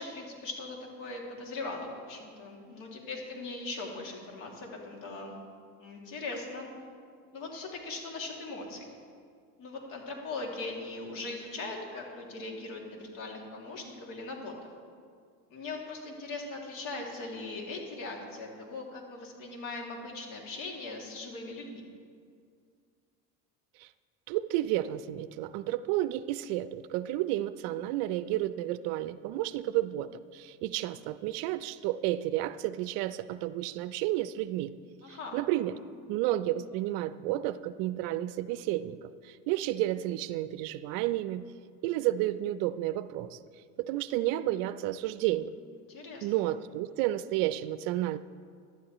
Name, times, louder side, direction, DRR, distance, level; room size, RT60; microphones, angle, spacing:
voice 1, 0.0-5.3 5.8-6.7 7.3-9.0 9.6-14.7 15.5-21.8 35.0-35.4 45.9-46.3, left 3 dB, 60° left, 0 dB, 2.6 m, -40 dB
voice 2, 24.3-34.7 35.1-35.8 36.1-41.5 41.8-43.4 43.8-45.5 46.2-48.2, right 14 dB, 65° right, 14 dB, 0.5 m, -31 dB
15.5 x 11.5 x 3.1 m, 2.1 s
supercardioid pair, 105°, 37 cm